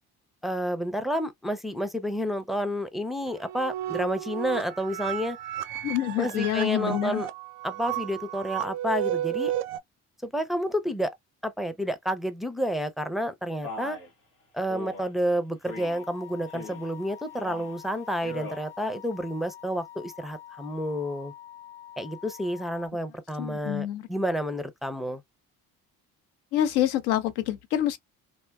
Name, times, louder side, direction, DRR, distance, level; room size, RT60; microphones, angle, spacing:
voice 1, 0.4-5.4 6.2-7.3 7.6-9.5 10.2-11.1 11.4-14.0 14.5-21.3 22.0-25.2, equal, ahead, 0.5 m, -30 dB
sound 1, 3.3-9.8, right 12 dB, 70° right, 0.5 m, -33 dB
voice 2, 5.8-7.2 23.4-24.1 26.5-28.0, left 12 dB, 65° left, 0.7 m, -27 dB
Male speech man speaking, 13.6-14.1 14.7-15.1 15.7-16.0 16.5-16.9 17.3-17.7 18.1-18.6, left 2 dB, 90° left, 1.0 m, -40 dB
sound 2, 15.7-22.9, left 11 dB, 30° left, 0.8 m, -46 dB
2.7 x 2.2 x 2.3 m
hypercardioid pair, 50°, 42 cm